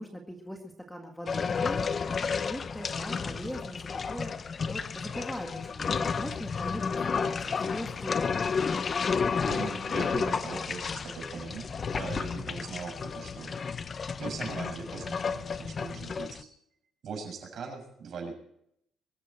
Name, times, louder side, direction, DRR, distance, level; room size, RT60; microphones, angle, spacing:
voice 1, 0.0-1.9 2.4-8.3, equal, 5° left, 3 dB, 1.9 m, -41 dB
sound 1, 1.3-16.4, left 5 dB, 30° left, 0.8 m, -32 dB
voice 2, 9.5-13.5 14.2-16.5 17.0-18.4, right 5 dB, 50° right, 3 dB, 6.7 m, -40 dB
23.0 x 14.0 x 4.5 m, 0.74 s
cardioid pair, 155°, 0 cm